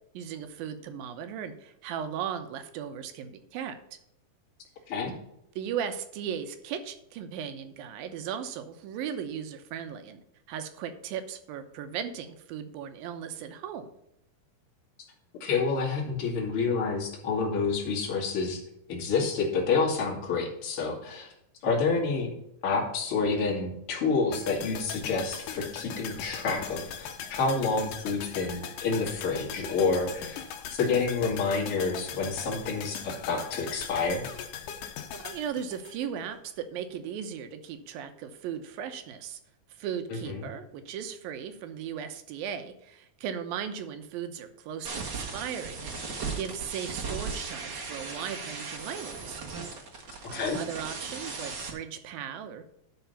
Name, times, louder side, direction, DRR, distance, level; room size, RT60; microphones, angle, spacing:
voice 1, 0.1-3.8 5.6-10.2 10.5-13.9 35.1-39.4 39.8-49.4 50.3-52.7, right 8 dB, 85° right, 9 dB, 2.7 m, -37 dB
voice 2, 15.4-18.6 18.9-21.3 21.6-22.3 22.6-30.4 30.7-34.3 40.1-40.5 50.3-50.6, left 4 dB, 40° left, -2 dB, 2.8 m, -28 dB
sound 1, 24.3-36.5 36.8-36.9, left 8 dB, 70° left, 2.4 m, -40 dB
sound 2, 44.8-51.7, right 4 dB, 45° right, 1.5 m, -37 dB
11.5 x 4.9 x 5.6 m, 0.76 s
omnidirectional pair, 4.0 m